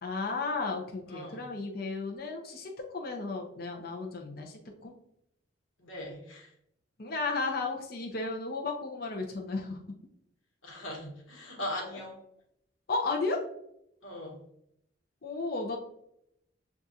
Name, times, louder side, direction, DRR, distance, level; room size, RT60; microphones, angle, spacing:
voice 1, 0.0-4.9 7.0-9.8 12.9-13.4 15.2-15.8, left 3 dB, 45° left, 1 dB, 0.6 m, -34 dB
voice 2, 1.1-1.5 5.8-6.5 10.6-12.2 14.0-14.4, left 1 dB, 80° left, -1 dB, 1.3 m, -40 dB
7.0 x 2.4 x 2.6 m, 0.76 s
head